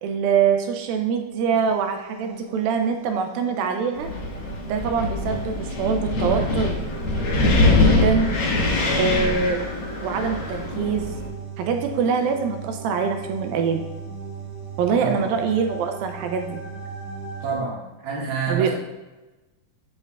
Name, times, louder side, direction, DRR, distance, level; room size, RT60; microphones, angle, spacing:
voice 1, 0.0-4.1 4.7-6.8 7.8-8.3 9.0-9.6 10.0-11.1 11.6-13.8 14.8-16.6 18.5-18.7, right 6 dB, 80° right, 4 dB, 2.3 m, -24 dB
sound 1, 1.5-17.6, right 4 dB, 30° right, 2.3 m, -39 dB
Wind, 4.0-11.3, left 2 dB, 65° left, 1.2 m, -23 dB
voice 2, 15.0-15.3 17.4-18.7, right 5 dB, 50° right, -4 dB, 1.6 m, -27 dB
8.2 x 7.8 x 2.3 m, 1.1 s
omnidirectional pair, 4.4 m